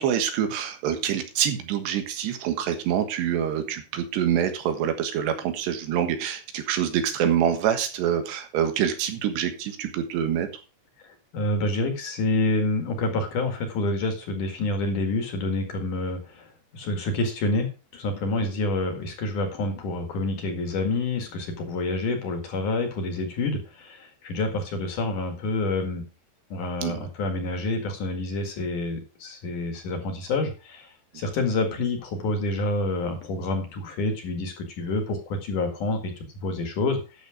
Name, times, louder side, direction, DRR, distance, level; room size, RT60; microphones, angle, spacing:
voice 1, 0.0-10.5 18.4-18.5 26.8-27.1, right 9 dB, 90° right, 7 dB, 3.7 m, -26 dB
voice 2, 11.0-26.0 26.5-30.9 31.1-37.0, left 2 dB, 55° left, 5 dB, 3.1 m, -28 dB
11.5 x 7.2 x 4.9 m, 0.32 s
omnidirectional pair, 4.7 m